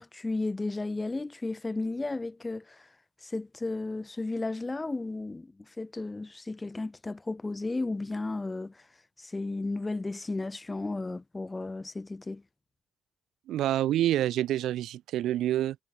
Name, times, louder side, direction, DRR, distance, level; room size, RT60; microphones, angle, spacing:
voice 1, 0.0-2.9 3.2-8.8 9.2-12.4, left 2 dB, 20° left, 0.3 m, -34 dB
voice 2, 13.5-15.8, right 13 dB, 80° right, 0.7 m, -27 dB
cardioid pair, 90°, 0 cm